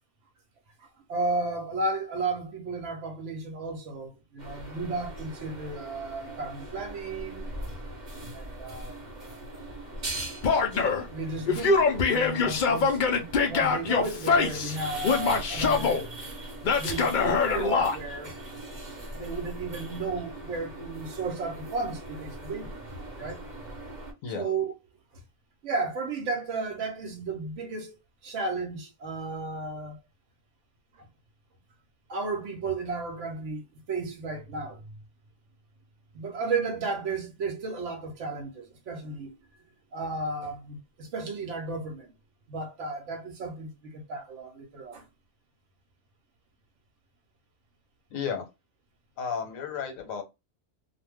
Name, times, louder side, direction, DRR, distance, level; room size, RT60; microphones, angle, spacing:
voice 1, 1.1-7.5 8.3-8.9 11.1-13.0 13.5-16.2 16.8-18.3 19.1-22.8 23.2-23.4 24.3-24.7 25.6-27.9 28.2-30.0 30.9-31.1 32.1-33.6 33.9-34.8 36.1-39.3 39.9-42.1 42.5-45.1, right 3 dB, 70° right, 1.0 m, -33 dB
sound 1, 4.4-24.1, right 1 dB, 40° right, 0.9 m, -41 dB
Male speech man speaking / Yell, 10.4-11.1 11.5-14.8 15.0-16.0 16.6-18.0, left 5 dB, 60° left, 0.5 m, -24 dB
voice 2, 48.1-48.4 49.2-50.2, left 6 dB, 90° left, 1.1 m, -33 dB
2.5 x 2.1 x 3.3 m
omnidirectional pair, 1.4 m